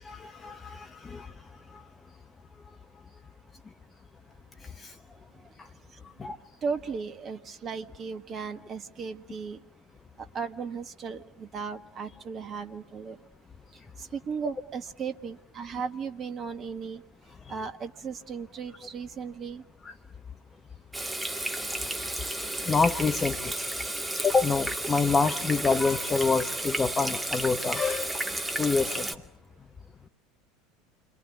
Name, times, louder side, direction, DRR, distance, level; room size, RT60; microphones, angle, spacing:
voice 1, 0.0-1.8 4.6-5.0 5.6-5.7 6.2-6.4 17.4-17.5 19.8-19.9 21.5-23.6 24.2-28.2 28.6-29.2, left 4 dB, 20° left, 7 dB, 1.2 m, -28 dB
voice 2, 6.6-9.6 10.3-13.2 14.0-17.0 17.5-19.6, right 5 dB, 35° right, 9 dB, 1.8 m, -36 dB
Water tap faucet / Sink (filling or washing), 20.9-29.2, right 1 dB, 10° right, 2.3 m, -32 dB
28.5 x 24.5 x 8.3 m, 0.68 s
figure-of-eight pair, 70°, 0 cm